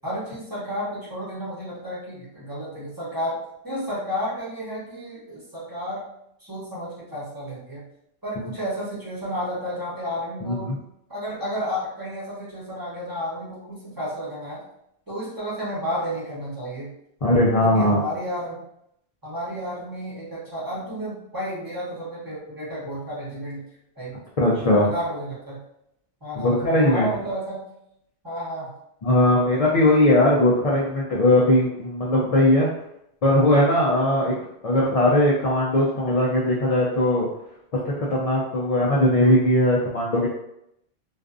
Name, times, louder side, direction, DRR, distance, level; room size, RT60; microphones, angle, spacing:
voice 1, 0.0-3.4 3.6-6.0 6.4-7.8 8.2-10.7 11.1-14.6 15.1-16.9 17.6-18.6 19.2-23.6 24.0-24.1 24.5-25.6 26.2-27.6 28.2-28.7, equal, 20° right, -9 dB, 0.9 m, -32 dB
voice 2, 10.4-10.8 17.2-18.0 24.4-24.9 26.3-27.1 29.0-32.7 33.2-34.3 34.6-37.3 37.7-40.3, left 1 dB, 55° left, -5 dB, 0.4 m, -19 dB
2.4 x 2.4 x 2.4 m, 0.77 s
omnidirectional pair, 1.2 m